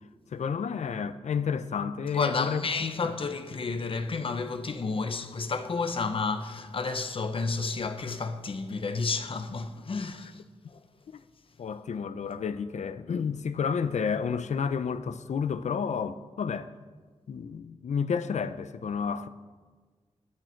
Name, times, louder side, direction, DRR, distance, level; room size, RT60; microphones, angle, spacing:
voice 1, 0.3-2.7 11.6-16.7 17.3-19.3, left 6 dB, 75° left, 0.6 m, -30 dB
voice 2, 2.1-10.4 10.7-10.8, left 4 dB, 50° left, 0.9 m, -31 dB
21.0 x 8.9 x 4.5 m
wide cardioid pair, 130°, 12 cm